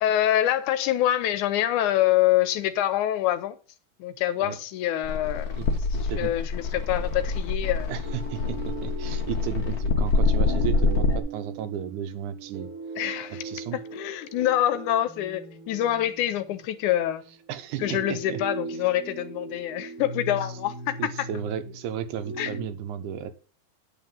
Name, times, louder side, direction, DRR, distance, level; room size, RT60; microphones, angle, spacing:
voice 1, 0.0-3.6 4.0-5.5 6.0-7.9 13.0-13.4 13.7-17.2 17.8-21.0 22.4-22.5, left 12 dB, 80° left, 2.1 m, -25 dB
sound 1, 5.0-11.2, left 3 dB, 65° left, 0.9 m, -26 dB
voice 2, 5.9-6.3 7.9-12.7 13.3-13.8 17.5-18.4 21.0-23.3, right 9 dB, 75° right, 2.3 m, -34 dB
sound 2, 7.6-22.7, right 3 dB, 45° right, 1.1 m, -39 dB
9.5 x 4.2 x 7.4 m
omnidirectional pair, 3.6 m